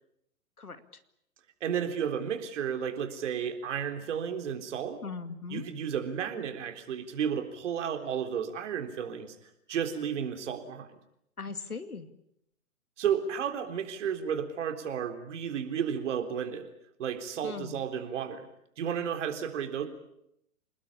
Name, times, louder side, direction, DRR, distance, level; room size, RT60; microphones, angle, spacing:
voice 1, 1.6-5.0 5.5-9.4 9.7-10.9 13.0-16.7 17.0-18.5 18.8-19.9, right 8 dB, 55° right, 7 dB, 3.8 m, -32 dB
voice 2, 5.0-5.7 11.4-12.1 17.4-17.8, left 4 dB, 90° left, 11 dB, 2.3 m, -39 dB
28.5 x 20.0 x 8.6 m, 0.77 s
figure-of-eight pair, 120°, 43 cm